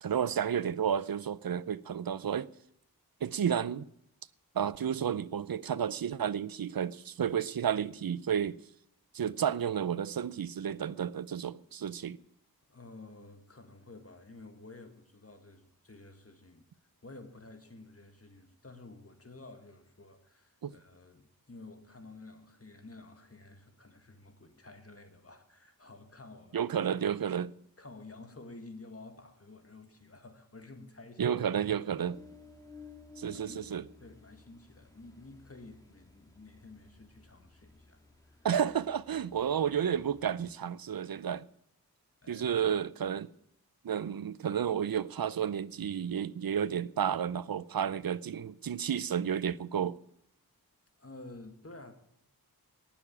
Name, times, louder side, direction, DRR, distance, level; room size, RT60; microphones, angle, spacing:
voice 1, 0.0-2.5 3.2-3.9 4.5-8.6 9.1-12.2 20.6-20.7 26.5-27.5 31.2-32.2 33.2-33.8 38.4-41.4 42.3-43.3 43.8-50.0, right 8 dB, 70° right, 0.6 m, -31 dB
voice 2, 12.7-16.6 17.0-27.2 27.8-31.3 32.7-32.8 33.3-33.6 34.0-38.0 38.3-38.5 42.2-42.5 51.0-51.9, left 2 dB, 40° left, 1.8 m, -51 dB
Ocean, 32.0-40.5, left 4 dB, 10° left, 2.2 m, -56 dB
18.0 x 7.0 x 8.6 m
wide cardioid pair, 85°, 37 cm